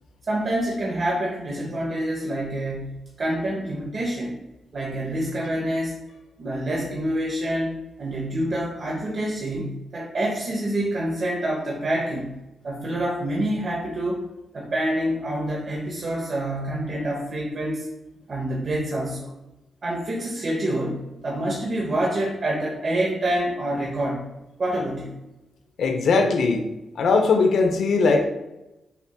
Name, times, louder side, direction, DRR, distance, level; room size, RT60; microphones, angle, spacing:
voice 1, 0.3-4.3 4.7-5.9 6.4-12.3 12.6-14.2 14.5-17.9 18.3-19.3 19.8-24.3 24.6-25.2, right 1 dB, 50° right, -3 dB, 0.9 m, -27 dB
voice 2, 25.8-26.7 27.0-28.2, left 4 dB, 75° left, 5 dB, 0.6 m, -19 dB
6.7 x 2.9 x 2.2 m, 0.96 s
cardioid pair, 75°, 0 cm